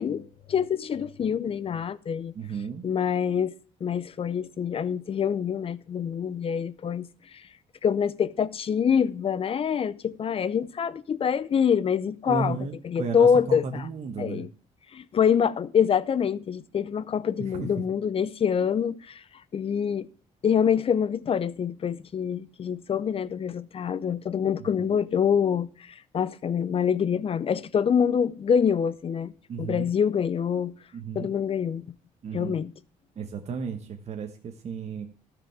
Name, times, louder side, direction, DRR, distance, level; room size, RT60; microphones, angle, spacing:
voice 1, 0.0-2.3 2.8-3.5 3.8-7.1 7.3-7.4 7.8-12.6 12.8-13.8 14.2-14.5 14.9-19.2 19.5-20.1 20.4-29.3 29.6-30.7 31.1-31.8 32.3-32.7, left 7 dB, 45° left, 0.7 m, -25 dB
voice 2, 2.3-2.8 12.3-14.5 17.4-17.7 24.6-24.7 29.5-29.9 30.9-31.3 32.2-32.6 33.1-35.1, right 5 dB, 50° right, 1.2 m, -34 dB
13.0 x 5.1 x 7.1 m
cardioid pair, 95°, 14 cm